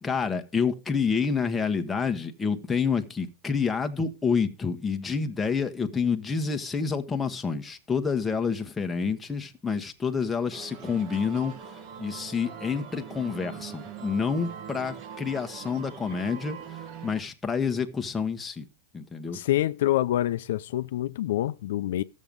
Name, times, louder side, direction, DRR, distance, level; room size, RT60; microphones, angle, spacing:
voice 1, 0.0-18.7 18.9-19.4, left 5 dB, 10° left, 1.1 m, -28 dB
Edinburgh millennium clock chiming, 10.5-17.2, right 7 dB, 45° right, 1.3 m, -42 dB
voice 2, 19.3-22.0, left 14 dB, 70° left, 0.5 m, -26 dB
13.0 x 7.4 x 5.2 m
supercardioid pair, 145°, 0 cm